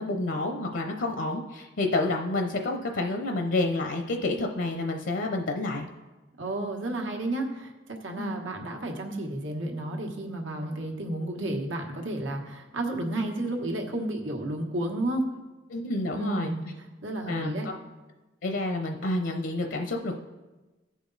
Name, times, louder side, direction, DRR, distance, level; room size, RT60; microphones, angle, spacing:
voice 1, 0.0-5.9 8.2-8.3 15.7-16.5 17.3-17.7 18.4-20.2, left 2 dB, 70° left, 4 dB, 0.7 m, -29 dB
voice 2, 6.4-15.2 16.1-16.6 17.0-17.7, right 1 dB, 90° right, 2 dB, 1.3 m, -32 dB
14.5 x 5.1 x 4.0 m, 1.2 s
head